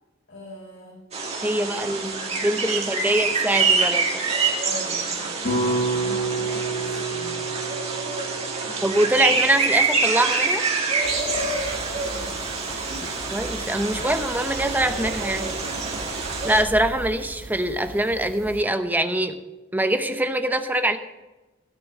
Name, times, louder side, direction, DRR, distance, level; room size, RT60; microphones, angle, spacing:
voice 1, 0.3-1.0 1.5-2.0 2.4-3.4 4.6-5.3 6.0-7.5 8.6-8.8 11.1-13.1 13.9-14.2 15.6-16.0, left 1 dB, 60° left, -6 dB, 5.0 m, -42 dB
sound 1, 1.1-16.6, right 4 dB, 30° right, 2.1 m, -26 dB
voice 2, 1.4-4.2 5.9-6.2 8.8-10.7 13.3-15.6 16.4-19.4 19.7-21.0, right 1 dB, 10° right, 8 dB, 0.8 m, -24 dB
sound 2, 5.4-9.7, right 3 dB, 45° left, 4.4 m, -29 dB
sound 3, 11.0-18.6, right 1 dB, 85° right, 1.0 m, -39 dB
16.0 x 6.5 x 6.5 m, 1.1 s
head